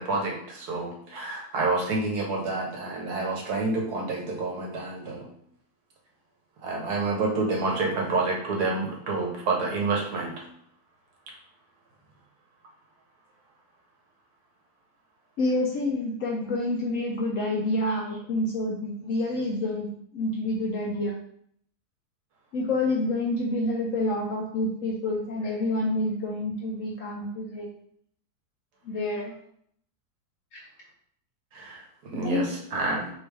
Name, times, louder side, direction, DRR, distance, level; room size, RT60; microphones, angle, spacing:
voice 1, 0.0-5.3 6.6-10.4 17.4-17.5 31.5-33.1, right 3 dB, 70° right, 0 dB, 1.4 m, -28 dB
voice 2, 15.4-21.1 22.5-27.7 28.9-29.3 30.5-30.6 32.2-32.4, left 2 dB, 70° left, -1 dB, 0.8 m, -28 dB
3.4 x 3.2 x 3.2 m, 0.66 s
omnidirectional pair, 1.8 m